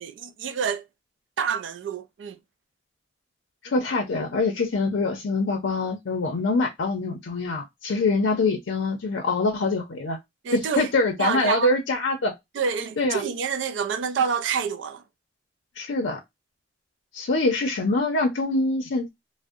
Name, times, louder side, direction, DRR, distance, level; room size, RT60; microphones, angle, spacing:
voice 1, 0.0-0.8 1.4-2.4 10.4-10.9 11.2-11.7 12.5-15.0, right 6 dB, 70° right, 0.3 m, -27 dB
voice 2, 3.6-10.2 10.5-12.3 13.0-13.2 15.8-16.2 17.1-19.1, left 3 dB, 80° left, 0.5 m, -24 dB
2.6 x 2.0 x 2.3 m
head